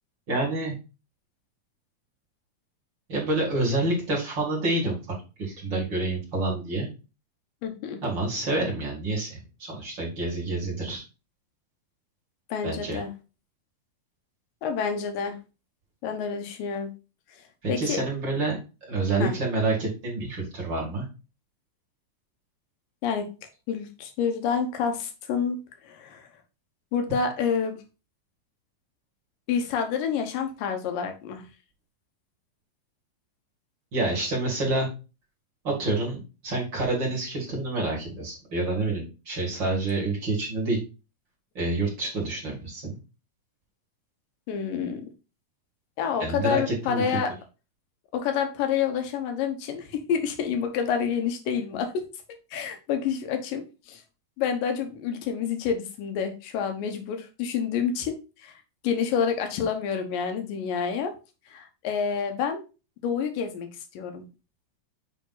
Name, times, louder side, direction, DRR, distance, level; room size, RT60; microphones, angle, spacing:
voice 1, 0.3-0.8 3.1-5.0 5.4-6.9 8.0-11.0 12.6-13.0 17.6-18.6 18.8-21.1 33.9-34.9 35.6-40.8 41.5-43.0 46.2-47.0, right 2 dB, 35° right, -3 dB, 2.2 m, -28 dB
voice 2, 7.6-8.0 12.5-13.1 14.6-15.4 16.0-16.9 17.7-18.0 19.2-19.3 23.0-23.3 23.7-26.3 26.9-27.8 29.5-31.4 44.5-45.1 46.0-47.3 48.1-52.1 52.5-54.0 54.4-58.5 58.8-61.1 61.5-62.7 63.0-63.7 63.9-64.2, left 7 dB, 70° left, 5 dB, 2.6 m, -28 dB
7.4 x 3.4 x 3.9 m, 0.30 s
omnidirectional pair, 4.3 m